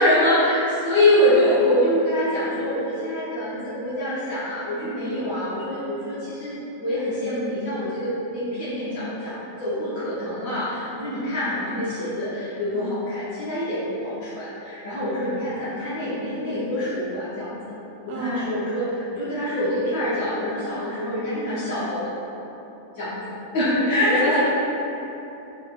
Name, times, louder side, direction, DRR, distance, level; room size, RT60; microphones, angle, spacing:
voice 1, 0.0-17.5 18.0-22.1 22.9-23.2 23.5-24.4, left 1 dB, 70° left, -11 dB, 1.2 m, -25 dB
voice 2, 18.1-18.5 23.9-24.4, right 2 dB, 60° right, -3 dB, 0.7 m, -29 dB
4.4 x 3.0 x 2.3 m, 3.0 s
omnidirectional pair, 1.6 m